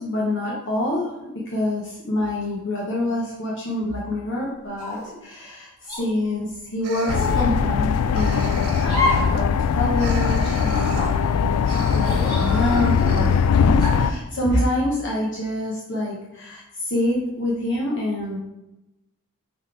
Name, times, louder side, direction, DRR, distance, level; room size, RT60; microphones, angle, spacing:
voice 1, 0.0-18.4, left 1 dB, 55° left, -4 dB, 1.1 m, -26 dB
sound 1, 4.8-5.2 5.9-6.1 7.1-7.5 8.8-9.4 9.7-9.8 10.7-11.1 12.0-12.9 13.8-14.2, left 2 dB, 20° left, 2.1 m, -28 dB
sound 2, 6.8-7.9 8.1-9.1 10.0-11.2 11.6-13.5, right 2 dB, 75° right, 1.0 m, -34 dB
sound 3, 7.1-14.1, left 6 dB, 80° left, 0.3 m, -20 dB
5.2 x 4.0 x 4.7 m, 0.93 s
head